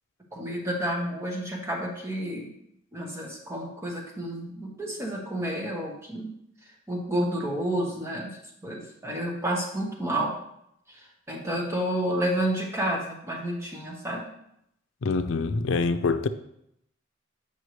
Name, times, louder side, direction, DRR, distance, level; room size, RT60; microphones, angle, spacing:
voice 1, 0.3-2.5 2.9-6.3 6.9-8.4 8.6-10.3 11.3-14.3, right 1 dB, 15° right, 1.2 m, -30 dB
voice 2, 15.0-16.3, left 4 dB, 85° left, 0.5 m, -25 dB
8.0 x 5.5 x 3.2 m
head